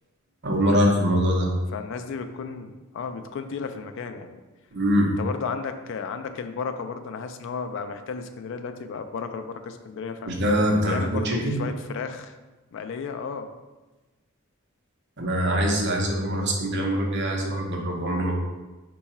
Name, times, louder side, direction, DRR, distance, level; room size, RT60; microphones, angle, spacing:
voice 1, 0.4-1.5 4.7-5.1 10.3-11.6 15.2-18.3, equal, 55° right, 0 dB, 0.7 m, -23 dB
voice 2, 1.7-4.4 5.2-10.3 10.8-12.3 12.7-13.5, left 5 dB, 60° left, 8 dB, 0.3 m, -33 dB
4.6 x 2.3 x 4.1 m, 1.2 s
head